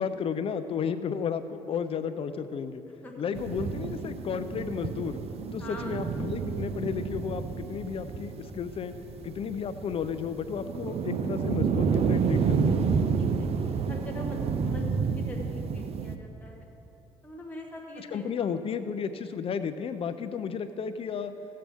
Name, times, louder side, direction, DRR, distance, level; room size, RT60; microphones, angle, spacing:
voice 1, 0.0-2.8 3.2-5.2 5.5-8.9 9.2-12.8 18.0-21.3, left 7 dB, 50° left, 11 dB, 0.5 m, -33 dB
sound 1, 3.3-16.2, right 5 dB, 55° right, 0.6 m, -30 dB
voice 2, 5.6-6.1 13.2-16.7 17.2-18.5, left 1 dB, 15° left, -1 dB, 1.3 m, -43 dB
16.0 x 7.6 x 3.5 m, 2.9 s
supercardioid pair, 65°, 13 cm